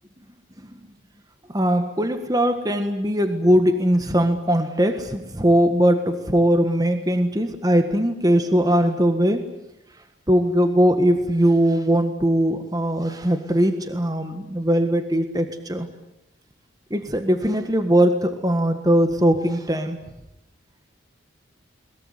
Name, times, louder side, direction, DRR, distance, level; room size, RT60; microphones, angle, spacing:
voice 1, 1.5-9.5 10.3-15.9 16.9-20.0, equal, 20° right, 8 dB, 1.6 m, -20 dB
22.0 x 22.0 x 9.7 m, 0.90 s
head